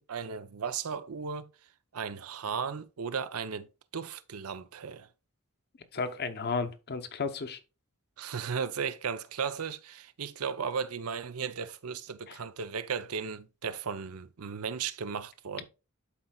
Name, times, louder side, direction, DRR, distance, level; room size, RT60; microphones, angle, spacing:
voice 1, 0.0-1.5 1.9-3.7 3.9-5.1 8.2-15.6, right 6 dB, 80° right, 0.6 m, -35 dB
voice 2, 5.9-7.6 12.3-12.4, left 4 dB, 50° left, 0.8 m, -33 dB
11.5 x 4.3 x 2.3 m
head